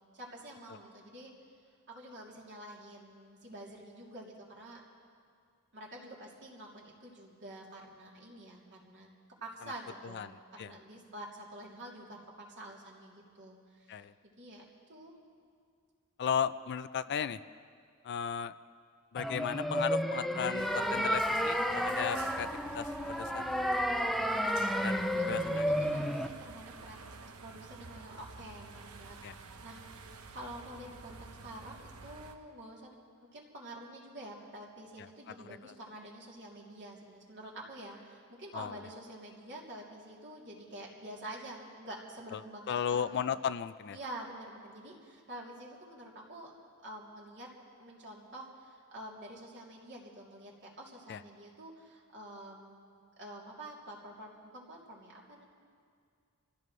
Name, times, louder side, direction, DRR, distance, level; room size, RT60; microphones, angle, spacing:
voice 1, 0.1-1.3 1.9-4.8 5.7-9.1 9.4-14.0 14.4-14.6 14.9-15.1 25.1-29.8 30.3-32.9 33.3-43.2 43.9-46.5 46.8-47.5 47.8-55.4, right 1 dB, 55° right, -4 dB, 3.0 m, -48 dB
voice 2, 10.1-10.7 13.9-14.1 16.2-17.4 18.0-18.5 19.1-22.5 22.7-23.5 24.8-25.7 29.2-29.3 35.5-35.7 38.5-38.7 42.3-42.4 42.7-44.0 51.1-51.2, left 8 dB, 50° left, 13 dB, 0.4 m, -35 dB
sound 1, 19.2-26.3, equal, ahead, 0.5 m, -31 dB
sound 2, 20.6-32.4, right 4 dB, 90° right, 1.0 m, -50 dB
26.5 x 16.0 x 3.2 m, 2.2 s
head